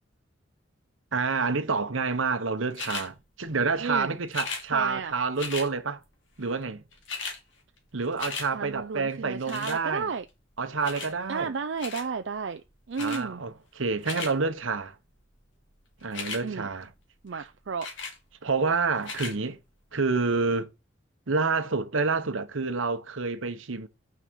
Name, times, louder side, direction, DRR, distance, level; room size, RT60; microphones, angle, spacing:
voice 1, 1.1-6.0 6.4-6.8 7.9-10.1 10.6-11.5 13.0-15.0 16.0-16.9 18.4-19.6 19.9-20.7 21.3-23.9, right 4 dB, 80° right, 1.0 m, -28 dB
camera click dslr, 2.7-3.1 4.3-4.6 5.4-5.7 6.6-6.7 6.9-7.4 7.8-8.5 9.5-9.8 10.8-11.1 11.8-12.1 13.0-13.2 13.8-14.3 16.0-16.4 17.8-18.2 19.0-19.3 20.0-20.1, left 5 dB, 70° left, 2.1 m, -35 dB
voice 2, 3.8-4.2 4.7-5.1 8.5-10.2 11.3-12.6 12.9-13.4 16.4-16.7 17.2-17.9, right 5 dB, 65° right, 0.4 m, -32 dB
6.4 x 4.9 x 6.2 m
head